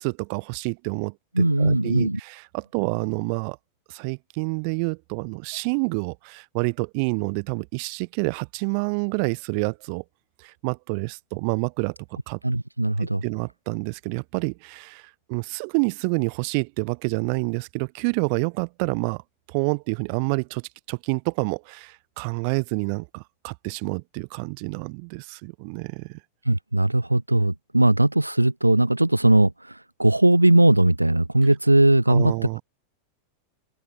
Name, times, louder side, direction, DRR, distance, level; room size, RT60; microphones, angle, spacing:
voice 1, 0.0-3.6 3.9-10.0 10.4-11.9 12.3-12.4 13.0-15.0 15.3-19.2 19.5-26.2 32.1-32.6, right 38 dB, 45° right, 0.8 m, -28 dB
voice 2, 1.4-2.2 12.4-13.2 26.5-32.3, right 1 dB, 85° right, 0.3 m, -19 dB
open air
figure-of-eight pair, 90°, 0 cm